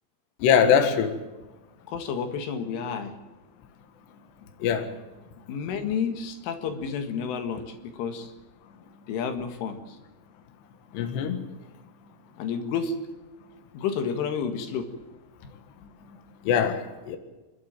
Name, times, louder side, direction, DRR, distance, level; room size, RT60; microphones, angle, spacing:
voice 1, 0.4-1.1 4.6-4.9 10.9-11.4 16.5-17.2, left 7 dB, 70° left, 7 dB, 3.6 m, -22 dB
voice 2, 1.9-3.1 5.5-8.3 9.1-10.0 12.4-13.0 13.7-14.9, left 6 dB, 85° left, 7 dB, 4.3 m, -30 dB
28.5 x 12.5 x 8.8 m, 1.1 s
omnidirectional pair, 5.5 m